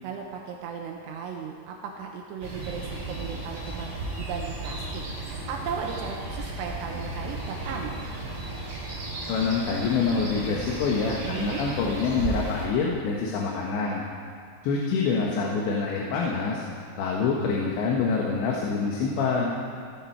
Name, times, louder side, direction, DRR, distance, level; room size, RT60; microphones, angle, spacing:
voice 1, 0.0-8.0 11.2-11.6 19.5-19.7, right 6 dB, 80° right, 1 dB, 2.9 m, -36 dB
sound 1, 2.4-12.7, right 2 dB, 40° right, 6.1 m, -34 dB
voice 2, 9.3-14.0 14.6-16.6 17.0-19.6, left 5 dB, 85° left, -2 dB, 3.6 m, -26 dB
16.0 x 14.0 x 4.6 m, 2.1 s
omnidirectional pair, 5.0 m